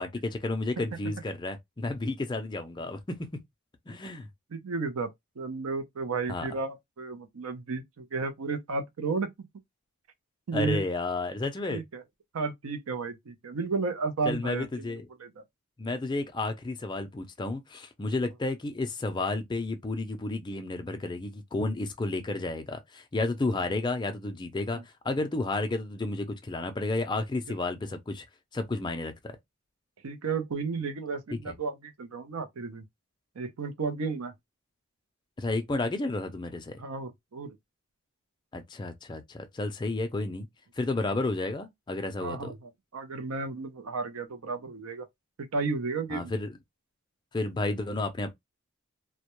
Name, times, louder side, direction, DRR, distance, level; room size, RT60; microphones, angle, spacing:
voice 1, 0.0-3.3 3.9-4.3 6.3-6.5 10.5-11.8 14.3-15.1 15.8-28.3 28.5-29.4 31.5-31.6 35.4-36.8 38.5-40.5 40.8-42.5 46.1-46.6 47.3-48.3, left 2 dB, 20° left, 0.4 m, -31 dB
voice 2, 4.5-9.3 10.5-10.8 11.7-12.0 12.3-15.4 24.7-24.8 30.0-32.8 33.4-34.3 36.8-37.6 42.2-45.1 45.4-46.3, right 4 dB, 85° right, 0.6 m, -33 dB
2.2 x 2.1 x 2.9 m
head